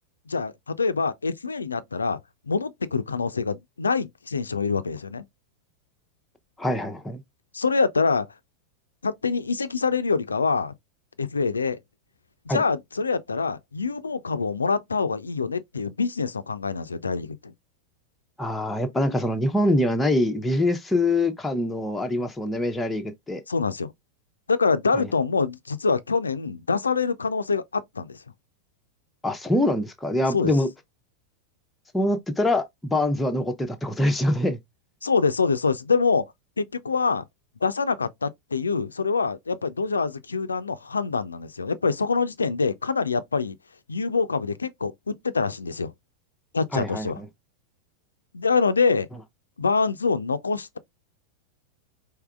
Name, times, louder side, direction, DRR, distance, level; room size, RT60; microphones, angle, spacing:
voice 1, 0.3-2.2 2.5-5.2 7.5-8.3 9.0-10.7 11.2-11.8 12.5-17.5 23.5-23.9 24.5-28.2 30.3-30.5 35.0-36.3 36.6-37.2 37.6-43.6 43.9-45.9 46.5-47.2 48.3-49.1 49.6-50.8, left 4 dB, 75° left, 0.4 m, -25 dB
voice 2, 6.6-7.2 12.5-12.6 18.4-23.4 24.9-25.1 29.2-30.7 31.9-34.6 46.7-47.3, left 1 dB, 5° left, 0.7 m, -24 dB
4.6 x 3.2 x 2.3 m
figure-of-eight pair, 90°, 0 cm